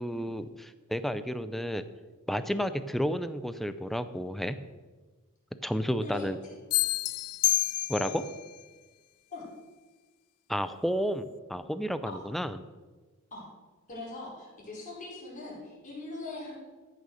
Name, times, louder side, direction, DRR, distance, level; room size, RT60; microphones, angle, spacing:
voice 1, 0.0-1.8 2.3-4.6 5.6-6.4 7.9-8.1 10.5-12.6, equal, ahead, 11 dB, 0.5 m, -31 dB
voice 2, 5.8-6.5 8.0-8.2 9.3-9.4 12.1-12.3 13.3-13.5 13.9-16.6, left 2 dB, 35° left, -5 dB, 4.6 m, -41 dB
sound 1, 6.7-8.4, left 17 dB, 70° left, 0.3 m, -28 dB
14.0 x 6.6 x 6.4 m, 1.3 s
head